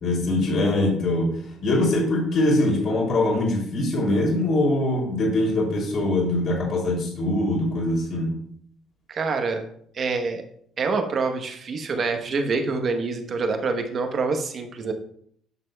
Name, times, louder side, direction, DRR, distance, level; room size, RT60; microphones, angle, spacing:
voice 1, 0.0-1.3 1.6-8.3, left 1 dB, 45° left, -1 dB, 2.7 m, -22 dB
voice 2, 9.1-9.6 9.9-10.4 10.8-14.9, right 4 dB, 35° right, 6 dB, 0.9 m, -26 dB
9.5 x 6.7 x 2.2 m, 0.65 s
cardioid pair, 150°, 0 cm